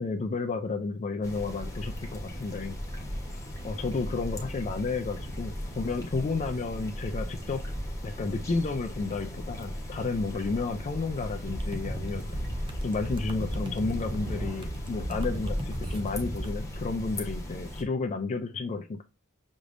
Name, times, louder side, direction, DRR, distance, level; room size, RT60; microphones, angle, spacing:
voice 1, 0.0-2.8 3.6-7.6 8.0-12.3 12.8-19.0, left 3 dB, 35° left, 0.4 m, -32 dB
sound 1, 1.2-17.8, equal, 15° left, 1.1 m, -37 dB
sound 2, 11.5-16.5, right 1 dB, 25° right, 0.6 m, -36 dB
6.1 x 3.3 x 2.6 m
head